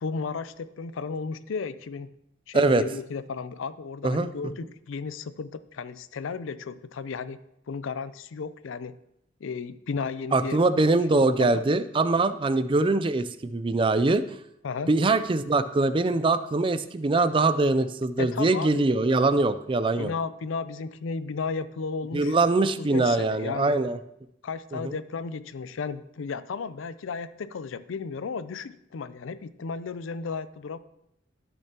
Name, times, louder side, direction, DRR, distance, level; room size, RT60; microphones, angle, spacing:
voice 1, 0.0-2.1 2.5-7.4 7.7-9.0 9.4-11.0 11.4-11.6 14.6-14.9 18.2-18.8 20.0-23.8 24.4-30.8, left 5 dB, 80° left, 14 dB, 0.4 m, -34 dB
voice 2, 10.3-14.2 14.9-20.1 22.1-24.0 24.7-24.9, right 3 dB, 25° right, 12 dB, 0.4 m, -23 dB
13.5 x 6.7 x 2.9 m, 0.79 s
head